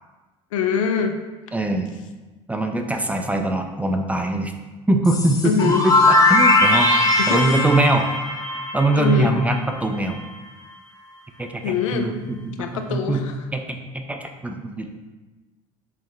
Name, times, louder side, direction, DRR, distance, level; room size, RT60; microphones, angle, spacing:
voice 1, 0.5-1.2 5.4-5.8 7.1-7.4 9.0-9.4 11.6-12.1 12.6-13.3, left 6 dB, 90° left, 6 dB, 0.4 m, -23 dB
voice 2, 1.5-1.9 2.5-4.5 4.9-7.0 7.3-8.1 8.7-10.2 11.4-13.3 13.5-15.0, right 2 dB, 10° right, 4 dB, 0.4 m, -22 dB
sound 1, 5.0-9.8, left 2 dB, 25° left, 0.7 m, -19 dB
5.7 x 2.0 x 3.3 m, 1.2 s
hypercardioid pair, 75°, 16 cm